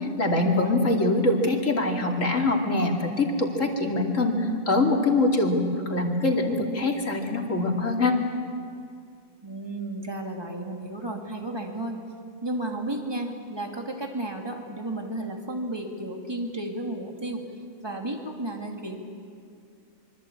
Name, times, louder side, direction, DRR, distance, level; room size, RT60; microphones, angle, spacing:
voice 1, 0.2-4.3 4.7-5.6 5.9-8.1, left 2 dB, 75° left, 1 dB, 3.1 m, -23 dB
voice 2, 9.4-12.0 12.4-17.4 17.8-19.0, right 1 dB, 20° right, 2 dB, 2.7 m, -33 dB
25.5 x 24.0 x 8.7 m, 2.3 s
omnidirectional pair, 1.4 m